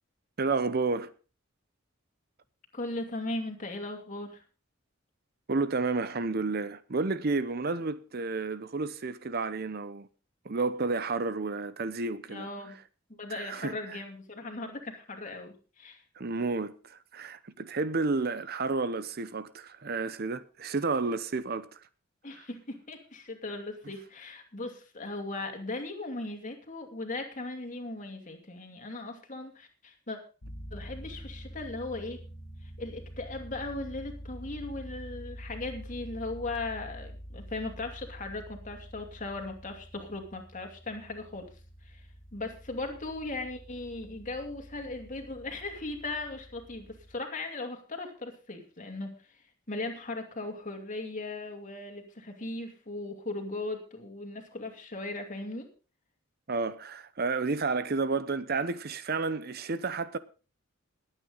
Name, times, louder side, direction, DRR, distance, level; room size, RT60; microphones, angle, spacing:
voice 1, 0.4-1.1 5.5-10.1 10.4-12.5 13.3-14.0 16.2-21.8 22.4-22.5 56.5-60.2, right 3 dB, 50° right, 0.7 m, -31 dB
voice 2, 2.7-4.4 12.3-12.8 13.2-16.0 22.2-30.2 30.7-32.2 32.8-41.5 41.8-49.3 49.7-55.7, left 2 dB, 40° left, 2.6 m, -38 dB
sound 1, 30.4-47.2, equal, 70° left, 2.0 m, -46 dB
20.5 x 9.0 x 4.0 m
head